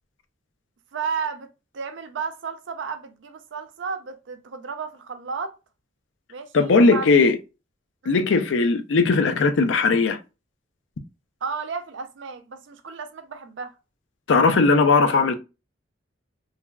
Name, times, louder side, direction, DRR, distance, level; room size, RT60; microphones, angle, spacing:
voice 1, 0.9-1.5 1.7-5.6 6.3-7.1 8.0-8.3 11.4-13.7, right 5 dB, 75° right, 0.5 m, -33 dB
voice 2, 6.5-7.4 8.1-10.2 14.3-15.3, left 4 dB, 80° left, 0.4 m, -18 dB
3.2 x 2.3 x 2.2 m
head